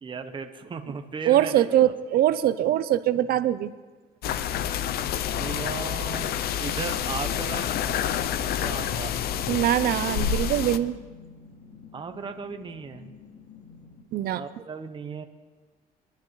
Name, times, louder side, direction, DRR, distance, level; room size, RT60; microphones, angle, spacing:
voice 1, 0.0-1.7 5.3-8.1 8.4-9.1 11.9-13.1 14.3-15.2, right 5 dB, 30° right, 6 dB, 1.0 m, -36 dB
voice 2, 1.3-3.7 9.5-11.0 14.1-14.4, right 12 dB, 65° right, 14 dB, 0.7 m, -22 dB
sound 1, 4.2-10.8, left 9 dB, 65° left, 0.6 m, -28 dB
sound 2, 6.6-14.0, left 5 dB, 50° left, 2.4 m, -49 dB
23.0 x 11.5 x 3.2 m, 1.3 s
cardioid pair, 110°, 17 cm